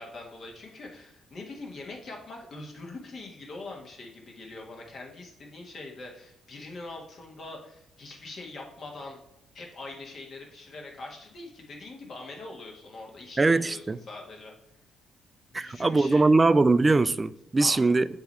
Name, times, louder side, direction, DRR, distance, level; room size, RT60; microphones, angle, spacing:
voice 1, 0.0-9.2 9.5-14.5 15.5-16.2 17.6-17.9, left 2 dB, 50° left, 1.6 m, -43 dB
voice 2, 13.4-14.0 15.5-18.1, right 3 dB, 25° right, 0.3 m, -21 dB
7.9 x 3.0 x 5.4 m
cardioid pair, 90°, 0 cm